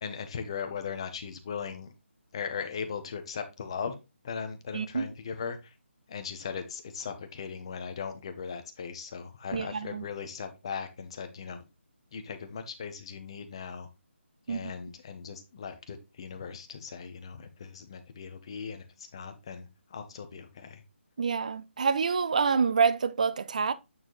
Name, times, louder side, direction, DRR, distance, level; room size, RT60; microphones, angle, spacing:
voice 1, 0.0-1.9 2.3-4.0 4.2-5.7 6.1-11.6 12.1-13.9 14.5-20.8, left 6 dB, 25° left, 0.9 m, -38 dB
voice 2, 4.7-5.1 9.5-10.1 14.5-14.7 21.2-23.7, right 5 dB, 35° right, 0.5 m, -27 dB
8.8 x 4.4 x 3.1 m
hypercardioid pair, 175°, 7 cm